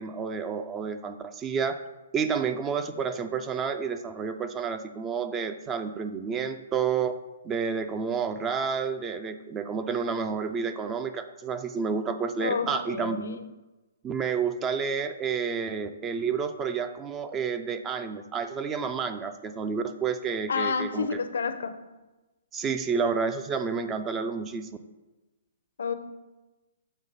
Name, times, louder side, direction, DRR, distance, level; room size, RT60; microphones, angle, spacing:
voice 1, 0.0-1.8 2.1-7.2 7.4-13.4 14.0-21.2 22.5-24.8, right 6 dB, 20° right, 9 dB, 0.4 m, -30 dB
voice 2, 12.4-13.4 20.5-21.8 25.8-25.9, left 5 dB, 75° left, 9 dB, 0.6 m, -29 dB
7.3 x 3.1 x 5.3 m, 1.1 s
hypercardioid pair, 140°, 0 cm